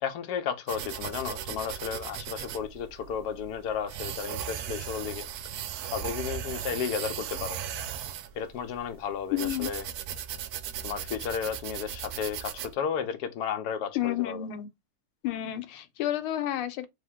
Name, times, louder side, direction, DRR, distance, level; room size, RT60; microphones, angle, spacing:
voice 1, 0.0-5.3 5.9-7.6 8.3-9.8 10.8-14.5, left 7 dB, 70° left, 0.9 m, -33 dB
sound 1, 0.7-12.7, right 9 dB, 85° right, 0.8 m, -37 dB
voice 2, 9.3-9.7 13.9-14.7 15.2-16.9, left 12 dB, 90° left, 1.5 m, -30 dB
3.5 x 3.2 x 3.5 m
omnidirectional pair, 2.3 m